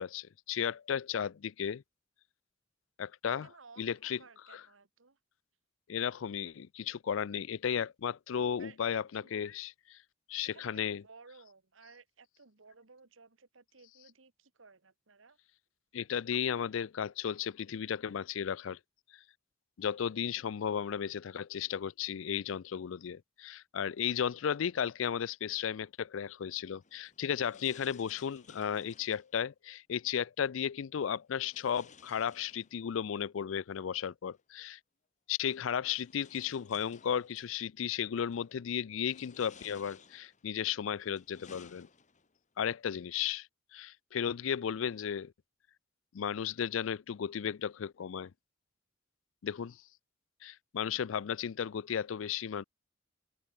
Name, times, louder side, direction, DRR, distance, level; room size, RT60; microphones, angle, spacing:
voice 1, 0.0-1.8 3.0-3.5 3.8-4.2 4.5-4.6 5.9-10.0 10.3-11.0 15.9-18.8 19.8-34.8 35.3-41.9 42.6-43.5 43.7-45.3 46.1-48.3 49.4-49.8 50.4-52.6, left 8 dB, 85° left, 0.4 m, -34 dB
voice 2, 3.4-5.2 8.6-9.3 10.5-15.4 16.3-16.4, right 4 dB, 85° right, 1.8 m, -58 dB
sound 1, 26.8-29.3 31.4-33.0 34.4-34.5 35.5-37.5 38.2-38.6 39.0-40.5 41.0-42.4, left 6 dB, 40° left, 1.5 m, -58 dB
head